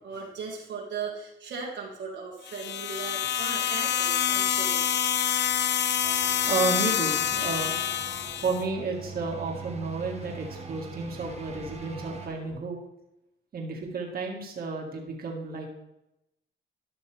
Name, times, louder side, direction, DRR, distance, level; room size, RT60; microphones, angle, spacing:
voice 1, 0.0-5.0, right 5 dB, 65° right, -2 dB, 1.7 m, -38 dB
sound 1, 2.5-8.6, left 10 dB, 60° left, 0.6 m, -27 dB
sound 2, 6.0-12.6, left 2 dB, 85° left, 3.4 m, -47 dB
sound 3, 6.0-12.3, right 5 dB, 30° right, 1.2 m, -44 dB
voice 2, 6.5-7.8 8.4-12.8 13.5-15.7, right 3 dB, 50° right, 0 dB, 1.8 m, -32 dB
12.5 x 6.1 x 3.4 m, 0.87 s
cardioid pair, 90°, 20 cm